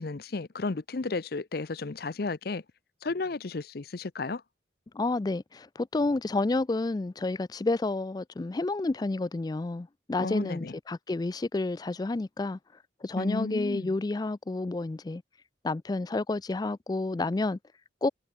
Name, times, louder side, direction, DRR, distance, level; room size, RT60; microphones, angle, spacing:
voice 1, 0.0-2.6 3.0-4.4 10.2-10.7 13.2-13.9, left 3 dB, 55° left, 0.6 m, -33 dB
voice 2, 4.9-12.6 13.0-15.2 15.6-17.6 18.0-18.1, left 2 dB, 20° left, 0.3 m, -30 dB
head